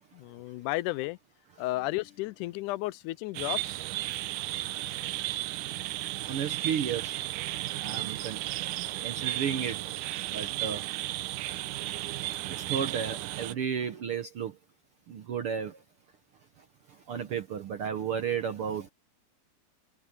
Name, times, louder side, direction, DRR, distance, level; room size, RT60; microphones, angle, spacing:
voice 1, 0.1-1.2 1.6-3.8, left 18 dB, 85° left, 2.0 m, -33 dB
sound 1, 3.3-13.5, right 16 dB, 80° right, 2.2 m, -34 dB
voice 2, 6.3-7.1 7.8-8.4 9.0-9.8 10.3-10.8 12.7-14.5 15.1-15.7 17.1-18.9, right 7 dB, 65° right, 1.5 m, -32 dB
omnidirectional pair, 3.6 m